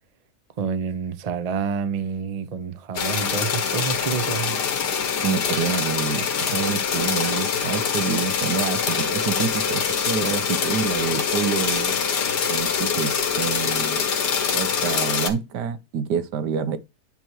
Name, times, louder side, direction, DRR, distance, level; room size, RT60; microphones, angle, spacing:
voice 1, 0.6-4.6, right 6 dB, 40° right, 0.5 m, -28 dB
sound 1, 2.9-15.3, left 6 dB, 80° left, 1.7 m, -24 dB
voice 2, 5.2-12.0 12.5-14.1 14.5-16.8, right 7 dB, 85° right, 1.3 m, -27 dB
9.0 x 3.1 x 4.6 m
omnidirectional pair, 1.8 m